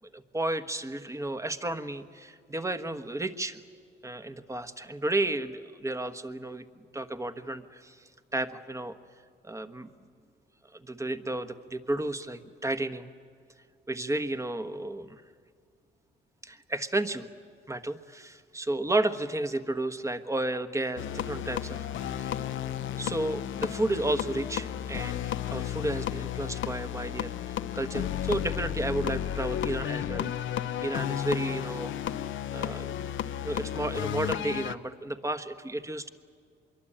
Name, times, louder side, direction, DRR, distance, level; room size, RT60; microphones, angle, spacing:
voice 1, 0.1-3.6 4.0-6.6 6.9-9.0 9.4-9.9 10.7-13.1 13.9-15.2 16.4-17.3 17.7-21.9 22.2-22.3 23.0-27.3 27.7-30.3 30.8-32.0 32.5-33.0 33.4-36.1, right 2 dB, 15° right, 9 dB, 1.3 m, -32 dB
sound 1, 21.0-34.8, left 10 dB, 75° left, 0.9 m, -33 dB
25.0 x 23.0 x 8.8 m, 2.1 s
cardioid pair, 90°, 20 cm